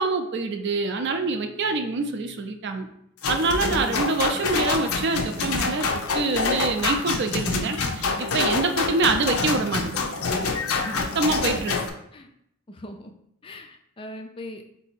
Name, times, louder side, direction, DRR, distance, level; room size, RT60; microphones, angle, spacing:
voice 1, 0.0-2.9 3.3-8.1 8.3-10.0 11.1-11.8, right 3 dB, 50° right, 6 dB, 0.4 m, -25 dB
sound 1, 3.2-11.9, left 4 dB, 80° left, 0.6 m, -26 dB
voice 2, 3.6-4.0 10.9-11.2 12.1-12.3 12.7-13.1 13.4-14.6, equal, 25° left, 5 dB, 0.3 m, -39 dB
4.0 x 2.7 x 4.4 m, 0.74 s
head